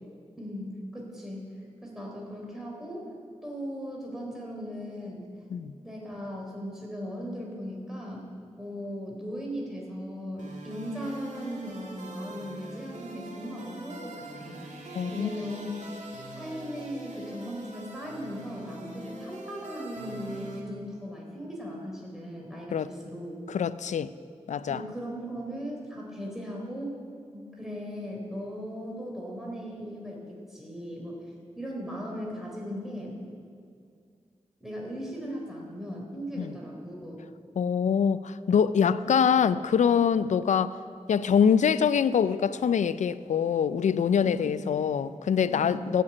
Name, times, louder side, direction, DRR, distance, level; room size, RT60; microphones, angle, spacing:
voice 1, 0.4-1.5 1.8-3.1 3.4-5.3 5.8-8.3 8.6-15.7 16.4-23.3 24.7-26.9 27.3-31.2 31.6-33.2 34.6-37.2 38.8-39.2 40.2-40.4 44.2-44.5 45.5-45.9, equal, 5° right, 3.7 m, -38 dB
sound 1, 10.4-20.6, right 2 dB, 85° right, 2.1 m, -43 dB
voice 2, 14.9-15.3 22.7-22.9 23.5-24.1 24.5-24.8 36.4-36.5 37.6-40.7 41.1-46.0, left 7 dB, 80° left, 0.5 m, -24 dB
15.0 x 6.8 x 8.6 m
cardioid pair, 50°, 12 cm